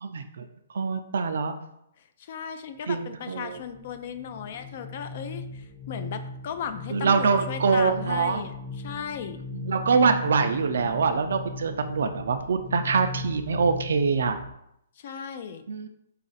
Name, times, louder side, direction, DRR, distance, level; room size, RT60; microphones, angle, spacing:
voice 1, 0.0-0.5 0.7-1.5 2.9-3.6 6.9-8.4 9.5-14.4 15.7-15.9, right 5 dB, 75° right, 8 dB, 0.4 m, -24 dB
voice 2, 2.2-9.4 15.0-15.6, left 7 dB, 50° left, 10 dB, 0.4 m, -36 dB
sound 1, 3.4-14.5, left 3 dB, ahead, 0.7 m, -38 dB
4.1 x 2.4 x 3.9 m, 0.78 s
hypercardioid pair, 155°, 0 cm